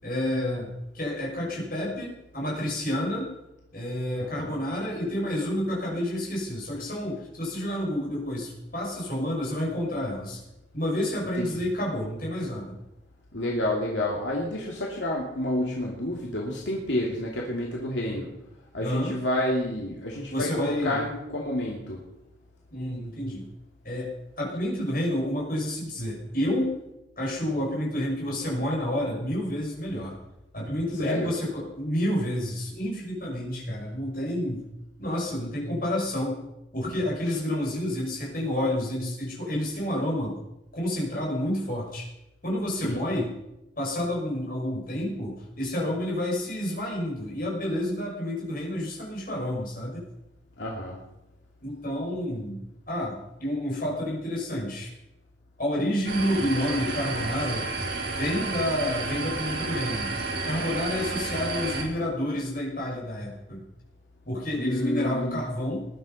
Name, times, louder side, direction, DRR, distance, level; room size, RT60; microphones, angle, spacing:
voice 1, 0.0-3.3 3.7-10.4 10.7-12.7 18.8-19.1 20.3-21.0 22.7-23.5 23.8-24.1 24.4-26.8 27.2-30.1 30.5-34.6 35.0-36.4 36.7-40.4 40.7-42.1 42.4-43.3 43.8-50.0 51.6-52.6 52.9-54.9 55.6-57.7 58.2-60.1 60.4-63.6 64.3-65.9, left 1 dB, 50° left, -3 dB, 6.6 m, -29 dB
voice 2, 4.2-4.6 11.3-11.7 13.3-18.3 18.7-22.0 30.9-31.3 42.7-43.0 50.6-51.0 64.5-65.4, left 1 dB, 75° left, -2 dB, 2.7 m, -29 dB
sound 1, 56.0-61.8, right 3 dB, 65° right, 5.6 m, -31 dB
20.5 x 11.5 x 5.6 m, 0.93 s
head